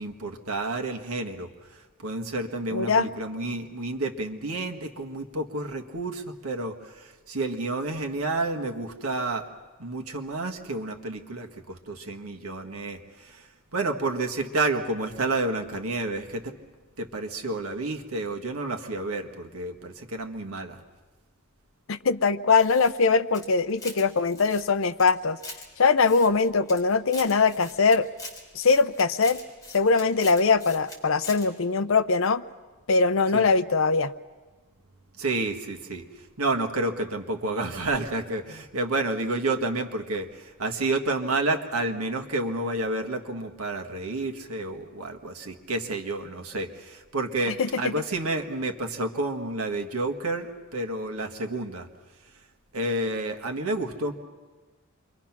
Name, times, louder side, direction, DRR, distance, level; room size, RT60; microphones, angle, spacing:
voice 1, 0.0-9.5 9.8-16.5 17.0-20.8 33.3-33.5 35.2-51.9 52.7-54.1, right 2 dB, 85° right, 4 dB, 1.6 m, -30 dB
voice 2, 2.7-3.1 21.9-25.4 25.8-28.1 28.5-29.4 29.7-32.4 32.9-34.1 47.6-47.9, left 4 dB, 65° left, 13 dB, 0.7 m, -22 dB
sound 1, 22.5-24.1 24.3-25.6 26.0-26.8 27.1-31.0 31.2-31.5, left 2 dB, 15° left, 3.9 m, -42 dB
28.5 x 23.5 x 6.0 m, 1.3 s
head